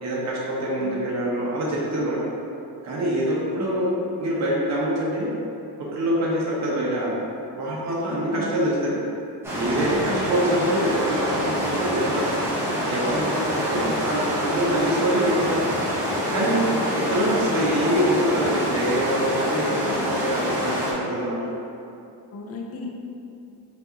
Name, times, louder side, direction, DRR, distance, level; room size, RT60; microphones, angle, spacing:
voice 1, 0.0-2.2 2.8-3.9 4.2-5.3 5.9-7.1 7.5-9.0 9.5-12.3 12.9-15.7 16.3-16.7 16.9-19.8 20.0-21.4, right 1 dB, 40° right, -6 dB, 0.9 m, -25 dB
voice 2, 0.8-1.1 3.5-3.8 8.1-8.6 9.9-10.8 16.7-17.6 19.7-20.0 22.3-22.9, left 2 dB, 35° left, 0 dB, 0.4 m, -37 dB
sound 1, 9.4-20.9, equal, 5° right, 0.9 m, -26 dB
5.2 x 2.6 x 2.8 m, 2.7 s
cardioid pair, 150°, 42 cm